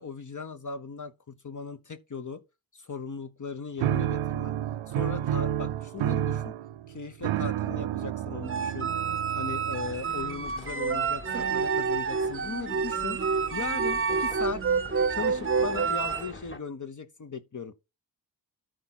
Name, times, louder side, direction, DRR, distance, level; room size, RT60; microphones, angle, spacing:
voice 1, 0.0-2.4 2.7-4.5 4.9-6.6 6.9-8.9 9.3-13.2 13.5-14.6 15.1-17.7, left 5 dB, 40° left, 1.0 m, -38 dB
sound 1, 3.8-10.3, right 11 dB, 90° right, 0.6 m, -30 dB
sound 2, 8.4-16.3, right 5 dB, 30° right, 0.7 m, -28 dB
sound 3, 9.8-16.6, left 2 dB, 25° left, 1.9 m, -45 dB
13.0 x 4.5 x 4.1 m
cardioid pair, 45°, 45 cm